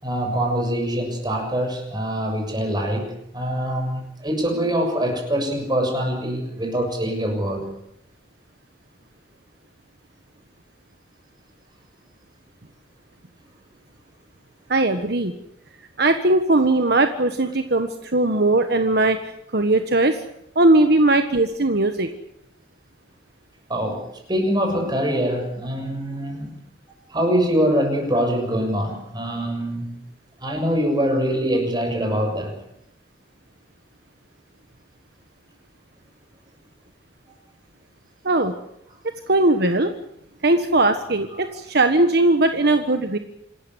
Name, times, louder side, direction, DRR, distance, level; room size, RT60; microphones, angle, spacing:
voice 1, 0.0-7.8 23.7-26.6 27.1-30.0 30.4-32.6, equal, 25° right, 3 dB, 6.9 m, -24 dB
voice 2, 14.7-15.3 16.0-19.2 19.5-20.2 20.5-22.1 38.2-38.5 39.3-39.9 40.4-43.2, right 2 dB, 60° right, 7 dB, 1.4 m, -19 dB
27.0 x 13.5 x 9.7 m, 0.77 s
head